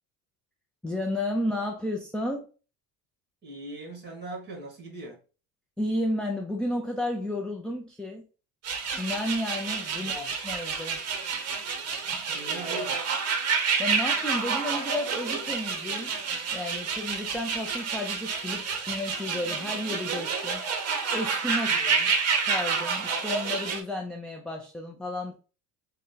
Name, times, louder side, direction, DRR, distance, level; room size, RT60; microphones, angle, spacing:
voice 1, 0.8-2.5 5.8-8.2 8.9-11.0 13.8-16.1 16.5-21.7 22.3-25.3, left 1 dB, 5° left, 0.5 m, -32 dB
voice 2, 3.4-5.2 10.0-10.3 12.3-13.1 21.7-22.2, right 2 dB, 30° right, 1.7 m, -41 dB
sound 1, 8.6-23.8, right 5 dB, 45° right, 1.0 m, -29 dB
3.8 x 2.3 x 3.7 m
supercardioid pair, 105°, 36 cm